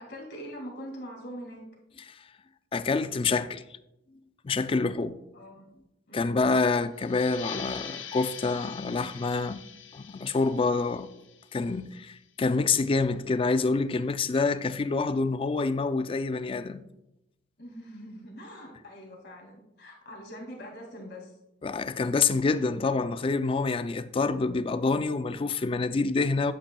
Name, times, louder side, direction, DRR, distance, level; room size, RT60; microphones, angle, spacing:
voice 1, 0.0-1.6 5.3-5.6 6.1-6.5 17.6-21.4, equal, 60° left, 2.2 m, -43 dB
voice 2, 2.7-3.6 4.4-5.2 6.1-9.6 9.9-11.1 11.5-16.8 21.6-26.5, left 4 dB, 30° left, 0.3 m, -27 dB
sound 1, 7.0-12.2, left 8 dB, 75° left, 0.9 m, -43 dB
10.0 x 8.3 x 2.3 m
head